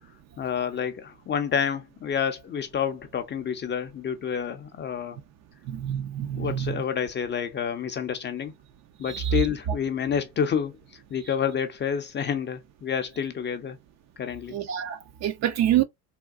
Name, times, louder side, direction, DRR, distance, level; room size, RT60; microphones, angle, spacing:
voice 1, 0.4-5.2 6.4-8.5 9.0-10.8 11.1-13.8 14.2-14.6, left 7 dB, 25° left, 0.4 m, -29 dB
voice 2, 5.7-6.8 9.0-9.3 14.5-15.8, right 11 dB, 40° right, 0.4 m, -27 dB
3.6 x 2.2 x 2.3 m
supercardioid pair, 95°, 45 cm